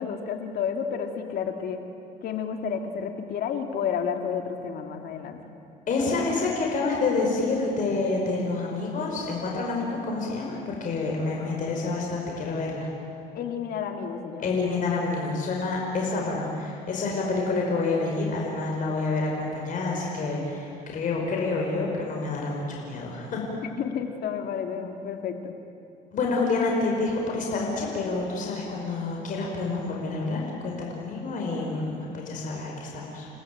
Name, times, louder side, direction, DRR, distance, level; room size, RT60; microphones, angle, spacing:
voice 1, 0.0-1.8 2.2-5.4 13.3-14.5 23.8-25.5, left 7 dB, 70° left, 5 dB, 2.6 m, -31 dB
voice 2, 5.9-12.9 14.4-23.4 26.1-33.3, left 3 dB, 50° left, -1 dB, 5.1 m, -28 dB
30.0 x 18.0 x 9.1 m, 2.5 s
cardioid pair, 110°, 17 cm